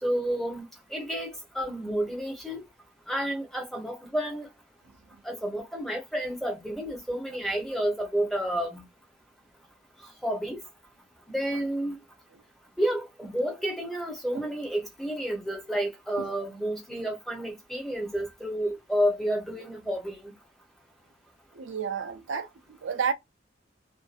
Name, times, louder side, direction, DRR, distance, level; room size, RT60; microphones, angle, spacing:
voice 1, 0.0-2.6 3.1-4.5 5.2-8.8 10.2-10.6 11.3-12.0 12.8-20.3, equal, ahead, 0.7 m, -30 dB
voice 2, 21.5-23.1, right 6 dB, 75° right, 0.5 m, -31 dB
2.5 x 2.4 x 2.5 m
head